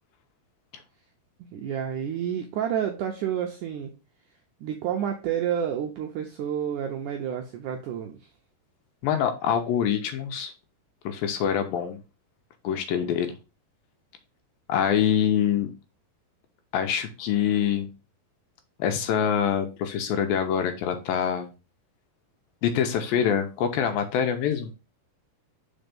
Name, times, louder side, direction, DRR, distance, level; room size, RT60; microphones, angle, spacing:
voice 1, 1.5-3.9 4.6-8.2, right 9 dB, 80° right, 3 dB, 1.8 m, -29 dB
voice 2, 9.0-10.5 11.1-12.0 12.6-13.3 14.7-15.7 16.7-17.9 18.8-21.5 22.6-24.7, left 8 dB, 75° left, 6 dB, 2.4 m, -25 dB
5.2 x 4.5 x 5.2 m, 0.30 s
omnidirectional pair, 4.5 m